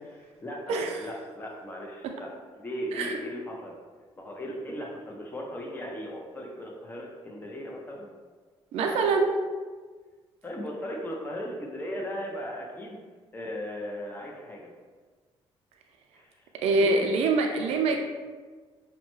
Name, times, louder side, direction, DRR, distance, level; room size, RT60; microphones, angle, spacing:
voice 1, 0.4-2.3 2.6-3.7 4.2-8.1 10.4-13.0 13.3-14.7 16.1-16.4 16.8-17.1 17.6-18.0, equal, 20° left, -1 dB, 0.6 m, -37 dB
voice 2, 8.7-9.4 16.6-18.0, right 3 dB, 85° right, 2 dB, 0.4 m, -24 dB
5.4 x 2.1 x 3.0 m, 1.4 s
cardioid pair, 95°, 10 cm